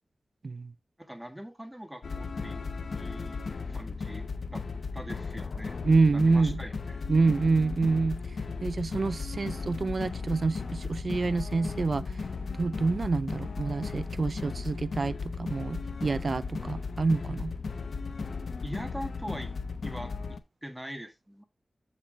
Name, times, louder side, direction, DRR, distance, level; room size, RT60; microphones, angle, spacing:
voice 1, 1.0-2.6 2.9-3.4 3.7-4.3 4.5-4.7 4.9-7.0 18.6-19.5 19.8-20.1 20.6-21.4, equal, 5° right, 1.7 m, -42 dB
sound 1, 2.0-20.4, left 4 dB, 75° left, 0.8 m, -36 dB
voice 2, 5.8-6.6 7.1-8.2 8.6-12.1 12.5-17.5, right 3 dB, 55° right, 0.4 m, -27 dB
7.8 x 7.2 x 3.1 m
wide cardioid pair, 105°, 0 cm